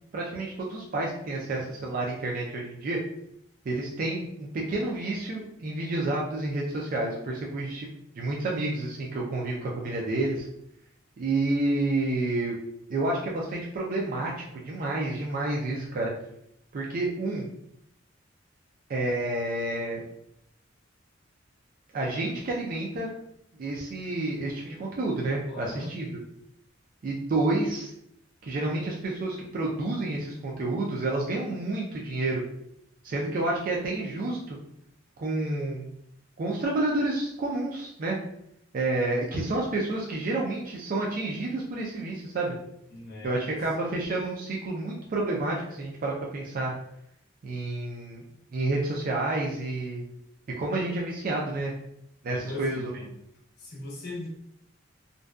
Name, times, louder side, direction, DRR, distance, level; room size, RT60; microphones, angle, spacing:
voice 1, 0.1-3.0 3.7-7.9 8.2-10.5 11.2-12.6 12.9-16.1 16.7-17.5 18.9-20.0 21.9-23.1 23.6-26.1 27.0-27.9 28.4-32.4 33.0-34.6 35.2-35.9 36.4-38.2 38.7-42.5 43.2-46.7 47.4-48.2 48.5-50.0 50.5-51.7 52.2-52.9, right 2 dB, 45° right, -2 dB, 0.4 m, -29 dB
voice 2, 25.5-25.9 42.9-43.3 52.3-53.1 53.6-54.3, left 2 dB, 55° left, -2 dB, 0.7 m, -39 dB
2.5 x 2.2 x 2.3 m, 0.75 s
head